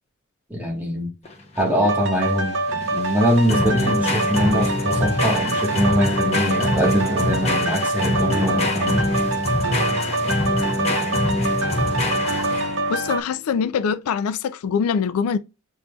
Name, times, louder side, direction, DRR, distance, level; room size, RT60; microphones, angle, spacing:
voice 1, 0.5-1.1 1.6-9.1, equal, 10° right, 1.3 m, -23 dB
sound 1, 1.2-12.9, left 2 dB, 30° left, 0.7 m, -24 dB
sound 2, 1.8-13.2, right 2 dB, 55° right, 0.7 m, -25 dB
voice 2, 12.9-15.4, left 6 dB, 85° left, 0.4 m, -23 dB
7.3 x 2.6 x 2.3 m
head